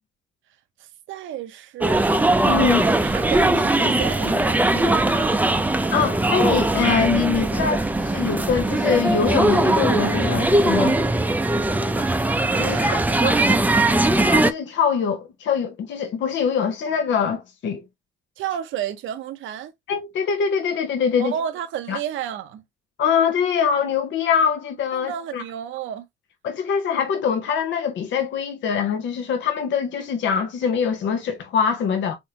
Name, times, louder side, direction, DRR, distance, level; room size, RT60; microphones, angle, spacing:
voice 1, 0.8-2.1 2.6-5.6 12.7-13.5 18.4-19.7 21.2-22.6 24.9-26.1, right 10 dB, 75° right, 0.7 m, -31 dB
sound 1, 1.8-14.5, right 2 dB, 10° right, 0.5 m, -20 dB
voice 2, 2.4-2.8 5.9-11.0 12.6-13.0 13.2-13.3 14.2-17.8 19.9-21.3 21.9-22.0 23.0-25.4 26.4-32.1, left 7 dB, 70° left, 0.9 m, -23 dB
3.6 x 3.5 x 2.8 m
cardioid pair, 90°, 20 cm